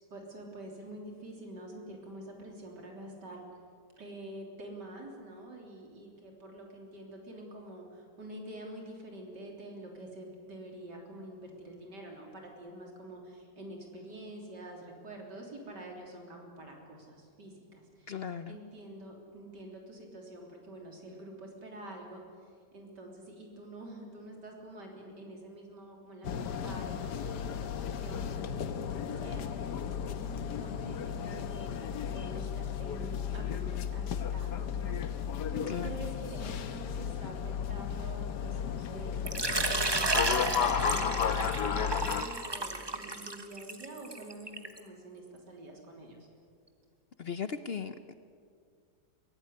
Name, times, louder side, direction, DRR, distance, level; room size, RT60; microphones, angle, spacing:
voice 1, 0.1-3.5 4.0-28.3 28.6-28.8 29.2-46.3, right 1 dB, 90° right, 0 dB, 4.0 m, -47 dB
voice 2, 18.1-18.6 35.7-35.9 47.2-48.1, left 7 dB, 55° left, 11 dB, 0.7 m, -37 dB
sound 1, 26.2-42.2, left 7 dB, 80° left, 1.6 m, -34 dB
Water / Liquid, 39.3-44.8, right 2 dB, 20° right, 0.9 m, -32 dB
23.0 x 16.5 x 9.8 m, 2.2 s
omnidirectional pair, 1.8 m